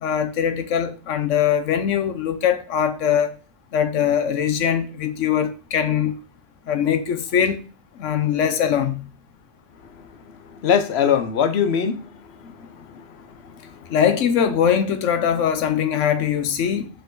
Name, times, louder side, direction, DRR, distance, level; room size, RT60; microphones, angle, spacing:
voice 1, 0.0-3.3 3.7-6.2 6.7-7.6 8.0-9.1 12.4-12.5 13.9-16.9, left 8 dB, 85° left, 1.1 m, -21 dB
voice 2, 10.0-10.3 10.6-12.2 12.7-13.9, left 7 dB, 65° left, 1.0 m, -23 dB
5.2 x 5.1 x 3.8 m
omnidirectional pair, 1.2 m